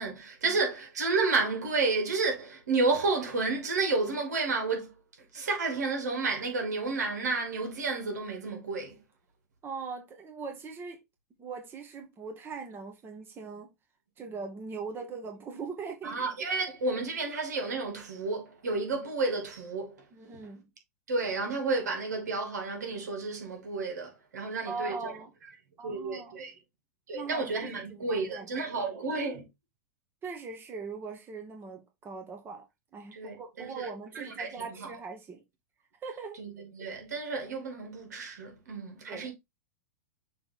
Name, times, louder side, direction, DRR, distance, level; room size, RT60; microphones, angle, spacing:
voice 1, 0.0-4.9 5.3-9.0 16.0-20.0 20.3-20.5 21.1-25.2 25.8-26.5 27.1-29.4 33.1-33.9 34.1-34.9 36.4-39.3, right 3 dB, 70° right, 2.5 m, -31 dB
voice 2, 9.6-11.0 11.4-13.7 14.2-16.2 20.1-20.7 24.6-25.3 25.8-26.4 27.1-27.5 27.9-28.6 30.2-32.6 32.9-35.4 36.0-36.4 39.1-39.3, right 4 dB, 25° right, 1.3 m, -40 dB
6.6 x 3.4 x 4.2 m
hypercardioid pair, 100°, 9 cm